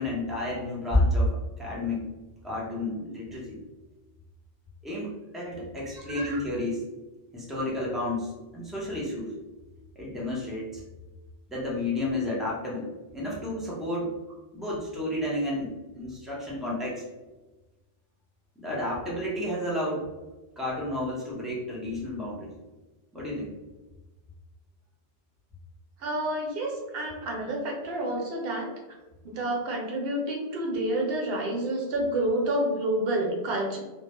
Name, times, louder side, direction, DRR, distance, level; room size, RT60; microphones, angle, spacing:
voice 1, 0.0-2.1 2.4-3.6 4.8-6.8 7.3-9.3 10.0-10.8 11.5-14.1 14.5-17.0 18.6-20.1 20.6-22.5 23.1-23.5, left 1 dB, ahead, -5 dB, 0.4 m, -31 dB
voice 2, 6.1-6.4 26.0-28.7 29.2-33.8, right 1 dB, 70° right, 0 dB, 0.8 m, -29 dB
2.2 x 2.0 x 2.8 m, 1.1 s
omnidirectional pair, 1.1 m